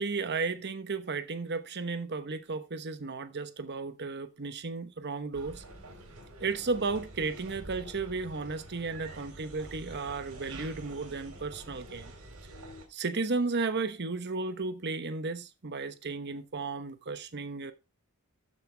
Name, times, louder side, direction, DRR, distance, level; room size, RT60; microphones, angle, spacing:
voice 1, 0.0-5.6 6.4-12.1 12.9-17.7, right 4 dB, 50° right, 1.0 m, -34 dB
sound 1, 5.3-12.9, right 1 dB, 90° right, 3.9 m, -47 dB
13.0 x 6.6 x 3.4 m
head